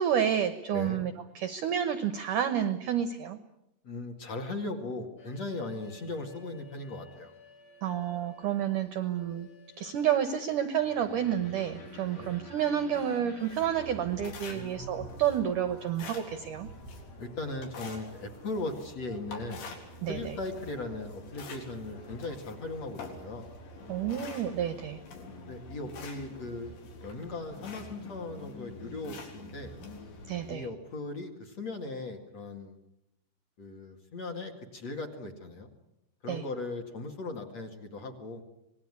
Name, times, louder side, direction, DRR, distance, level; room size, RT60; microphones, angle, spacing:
voice 1, 0.0-3.4 7.8-9.5 9.8-16.7 20.0-20.3 23.9-25.0 30.3-30.7 36.3-36.4, right 9 dB, 85° right, 11 dB, 1.8 m, -30 dB
voice 2, 3.8-7.3 12.0-12.3 14.5-15.1 17.2-19.6 20.1-23.5 25.5-26.7 27.0-29.7 30.5-32.7 33.6-35.7 36.2-38.4, left 2 dB, 45° left, 3 dB, 2.5 m, -38 dB
sound 1, 5.2-13.8, left 1 dB, 90° left, 10.5 m, -51 dB
sound 2, 13.4-30.5, left 2 dB, 70° left, 6.1 m, -46 dB
26.0 x 20.0 x 9.7 m, 0.86 s
omnidirectional pair, 5.3 m